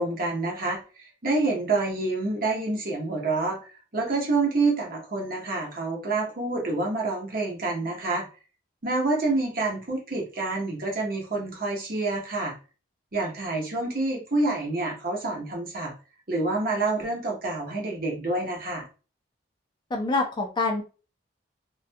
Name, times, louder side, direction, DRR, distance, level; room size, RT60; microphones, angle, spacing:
voice 1, 0.0-3.6 3.9-8.3 8.8-12.5 13.1-15.9 16.3-18.9, right 3 dB, 50° right, -1 dB, 0.9 m, -27 dB
voice 2, 19.9-20.8, left 3 dB, 25° left, 2 dB, 0.4 m, -26 dB
2.4 x 2.2 x 2.5 m, 0.34 s
head